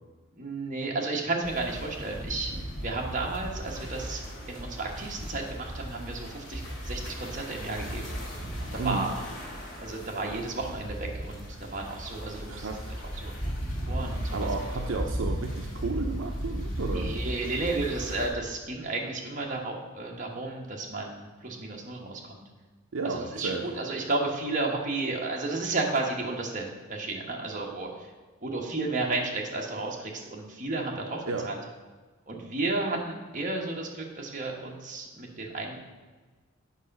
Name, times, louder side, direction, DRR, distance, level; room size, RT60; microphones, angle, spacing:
voice 1, 0.4-2.5 2.8-8.1 8.7-9.2 9.8-13.0 13.2-13.3 13.9-14.4 16.8-22.4 23.0-28.1 28.4-31.6 32.3-35.8, right 3 dB, 35° right, -1 dB, 1.3 m, -33 dB
sound 1, 1.4-18.3, equal, 50° left, 2.5 m, -36 dB
voice 2, 8.8-9.1 12.5-12.9 14.3-17.1 22.9-23.6 31.3-31.5, right 3 dB, 65° right, 3 dB, 0.6 m, -33 dB
8.4 x 5.6 x 5.3 m, 1.3 s
head